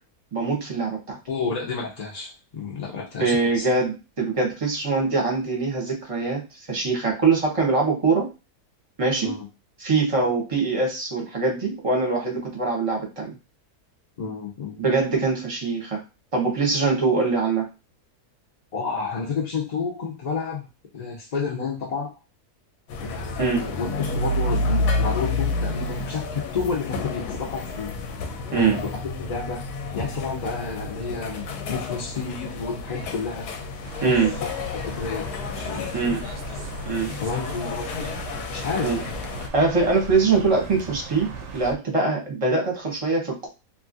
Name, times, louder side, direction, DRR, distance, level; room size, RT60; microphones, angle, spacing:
voice 1, 0.3-1.2 3.2-6.4 6.7-8.3 9.0-9.3 9.8-13.3 14.8-16.0 16.3-17.7 23.4-23.7 28.5-28.8 34.0-34.3 35.9-36.2 36.8-37.2 38.8-39.0 39.5-43.5, right 4 dB, 30° right, 0 dB, 0.7 m, -23 dB
voice 2, 1.3-3.7 9.2-9.5 14.2-14.8 18.7-20.7 20.9-22.1 23.0-27.9 28.5-29.6 29.9-31.4 31.7-33.4 34.1-34.2 34.7-36.3 37.2-38.9, left 5 dB, 65° left, -3 dB, 0.4 m, -30 dB
sound 1, 22.9-39.5, left 2 dB, 90° left, 1.1 m, -30 dB
sound 2, 33.8-41.7, right 4 dB, 65° right, 0.7 m, -39 dB
3.1 x 2.4 x 2.5 m, 0.28 s
omnidirectional pair, 1.6 m